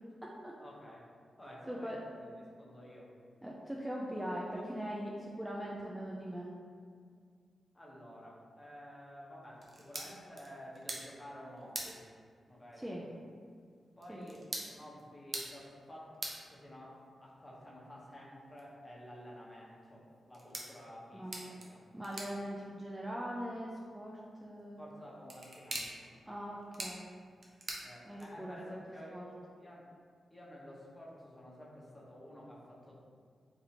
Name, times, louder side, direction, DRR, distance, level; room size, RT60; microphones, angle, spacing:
voice 1, 0.6-1.0 1.4-3.1 7.7-12.0 12.5-12.8 14.0-16.0 16.4-21.8 24.8-26.1 27.8-29.2 29.5-29.9 30.3-33.0, equal, 20° left, -5 dB, 1.1 m, -51 dB
voice 2, 1.7-2.0 3.4-6.5 12.8-13.0 14.1-14.3 21.1-21.5 21.9-24.8 26.3-27.1 28.0-28.6 29.1-29.3, equal, 10° right, -4 dB, 0.5 m, -41 dB
sound 1, 9.6-28.6, right 2 dB, 50° right, 0.7 m, -48 dB
2.7 x 2.7 x 4.2 m, 2.1 s
cardioid pair, 50°, 0 cm